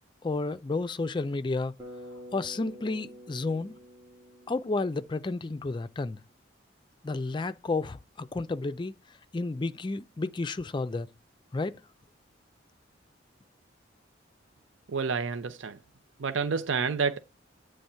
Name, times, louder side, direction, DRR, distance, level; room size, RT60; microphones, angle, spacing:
voice 1, 0.2-1.7 2.3-3.7 4.5-6.2 7.0-8.9 9.3-11.1 11.5-11.8, left 3 dB, 25° left, 0.4 m, -31 dB
Bass guitar, 1.8-5.9, equal, 20° right, 1.8 m, -48 dB
voice 2, 14.9-15.8 16.2-17.2, right 5 dB, 90° right, 0.6 m, -29 dB
8.6 x 3.4 x 5.5 m
head